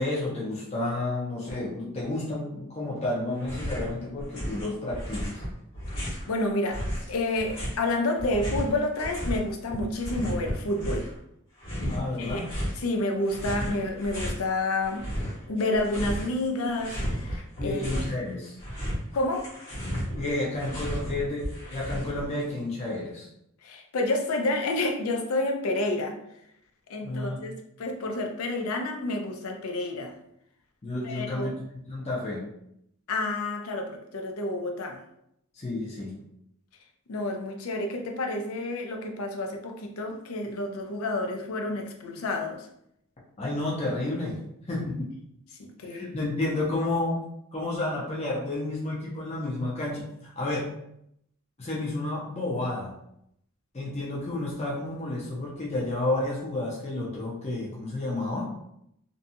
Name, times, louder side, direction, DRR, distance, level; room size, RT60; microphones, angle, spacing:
voice 1, 0.0-5.4 11.9-12.5 17.6-18.6 20.2-23.3 27.0-27.4 30.8-32.5 35.5-36.2 43.4-44.4 44.7-45.1 45.8-47.2 47.5-50.7 51.6-52.9 53.7-58.5, left 2 dB, 30° left, -5 dB, 0.6 m, -31 dB
sound 1, 3.4-3.9 4.2-6.3 6.7-9.4 9.7-11.2 11.6-12.8 13.2-14.4 14.8-16.4 16.7-18.2 18.5-22.3, equal, 55° left, 1.3 m, -33 dB
voice 2, 6.0-6.8 7.1-11.1 11.8-12.4 12.8-15.1 15.5-18.0 19.1-19.5 23.6-26.2 26.9-30.1 31.0-31.5 33.1-35.0 37.1-42.7 45.8-46.2, left 2 dB, 90° left, 3 dB, 0.5 m, -29 dB
2.7 x 2.2 x 2.6 m, 0.76 s
head